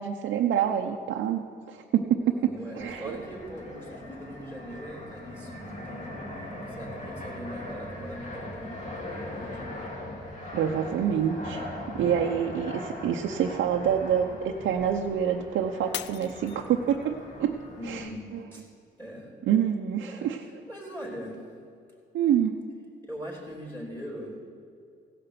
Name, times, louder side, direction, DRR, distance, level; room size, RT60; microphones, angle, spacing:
voice 1, 0.0-1.4 1.7-3.2 10.5-11.6 11.9-18.4 19.5-20.4 22.1-22.6, right 9 dB, 70° right, 2 dB, 0.7 m, -27 dB
voice 2, 2.3-9.9 17.6-18.6 19.0-19.3 20.0-21.4 23.0-24.4, equal, 10° left, -4 dB, 3.4 m, -41 dB
Fixed-wing aircraft airplane, 2.8-18.1, left 1 dB, 35° left, 2.3 m, -40 dB
Shatter, 15.9-17.2 17.8-18.2 18.8-18.9, left 12 dB, 65° left, 0.4 m, -39 dB
16.5 x 5.8 x 6.8 m, 2.3 s
cardioid pair, 90°, 20 cm